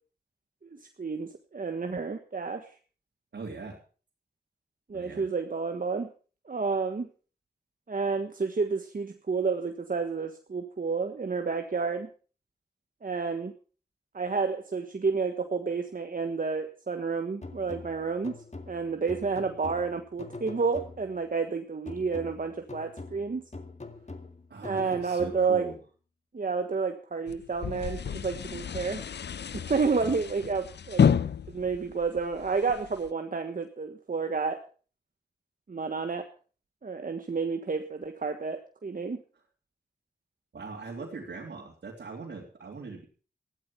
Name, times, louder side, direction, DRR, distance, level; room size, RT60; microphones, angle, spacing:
voice 1, 0.6-2.7 4.9-6.1 6.5-7.1 7.9-12.1 13.0-13.5 14.1-18.4 18.7-23.4 24.6-25.6 26.3-29.0 29.5-31.1 31.5-34.6 35.7-36.2 36.8-39.2, right 4 dB, 55° right, 6 dB, 1.4 m, -30 dB
voice 2, 3.3-3.8 4.9-5.3 24.5-25.8 40.5-43.0, right 4 dB, 85° right, -3 dB, 3.4 m, -41 dB
sound 1, 17.4-21.3 21.9-25.7, left 3 dB, 40° left, 2.0 m, -44 dB
sound 2, 27.3-33.1, left 7 dB, 80° left, 0.6 m, -30 dB
15.0 x 12.0 x 5.7 m, 0.40 s
cardioid pair, 45°, 17 cm